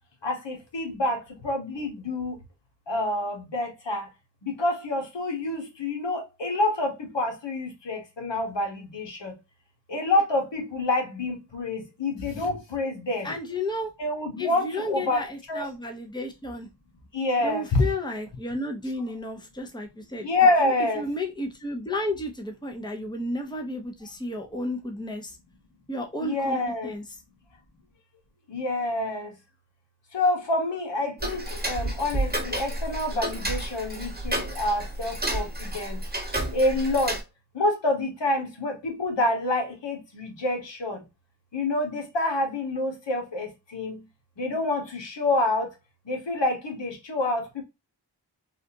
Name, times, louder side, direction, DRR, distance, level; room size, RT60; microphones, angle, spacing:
voice 1, 0.2-2.4 2.9-4.1 4.4-9.3 9.9-13.3 14.0-15.6 17.1-17.9 20.2-21.0 26.2-26.9 28.5-29.3 30.1-36.0 36.5-37.2 37.5-41.0 41.5-44.0 44.4-45.7 46.0-47.6, left 2 dB, 80° left, 1.2 m, -27 dB
voice 2, 13.2-13.9 14.4-16.7 17.4-20.3 20.6-25.4 25.9-27.0, left 1 dB, 10° left, 0.8 m, -32 dB
Tick-tock, 31.2-37.2, right 1 dB, 20° right, 1.2 m, -31 dB
3.5 x 2.5 x 2.7 m
wide cardioid pair, 75°, 43 cm